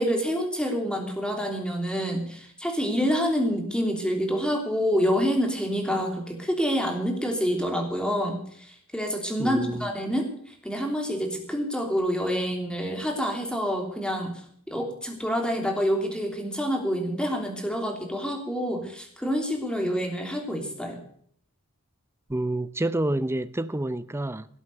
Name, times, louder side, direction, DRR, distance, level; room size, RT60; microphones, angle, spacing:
voice 1, 0.0-14.3 14.7-21.0, equal, 5° left, 3.0 m, -27 dB
voice 2, 9.4-9.9 22.3-24.5, right 1 dB, 10° right, 0.6 m, -28 dB
18.0 x 8.1 x 6.6 m
head